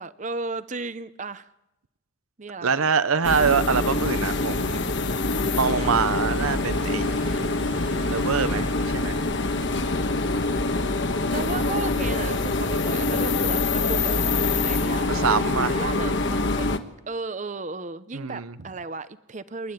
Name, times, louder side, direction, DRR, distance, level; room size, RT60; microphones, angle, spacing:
voice 1, 0.0-1.5 2.4-2.9 3.6-4.3 11.3-14.2 14.5-16.8 17.1-19.7, right 3 dB, 35° right, 0.8 m, -35 dB
voice 2, 2.6-4.9 5.5-7.1 8.1-8.7 8.9-9.2 15.1-15.8 18.1-18.5, right 6 dB, 90° right, 0.8 m, -24 dB
sound 1, 3.2-16.8, left 2 dB, 60° left, 1.3 m, -25 dB
Car passing by / Accelerating revving vroom, 4.5-15.7, right 1 dB, 70° right, 2.3 m, -43 dB
28.0 x 11.5 x 9.0 m
head